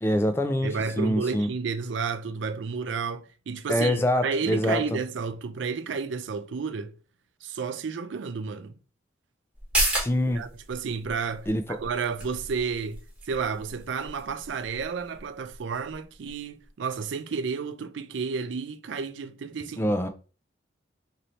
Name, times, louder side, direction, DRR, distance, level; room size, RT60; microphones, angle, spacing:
voice 1, 0.0-1.5 3.7-5.0 10.0-10.4 11.5-11.8 19.8-20.1, equal, 15° left, 0.3 m, -25 dB
voice 2, 0.6-6.9 7.4-8.8 10.2-19.9, right 5 dB, 75° right, 0.4 m, -31 dB
sound 1, 9.5-16.7 17.0-17.1, right 1 dB, 5° right, 1.1 m, -34 dB
3.2 x 2.7 x 4.0 m
head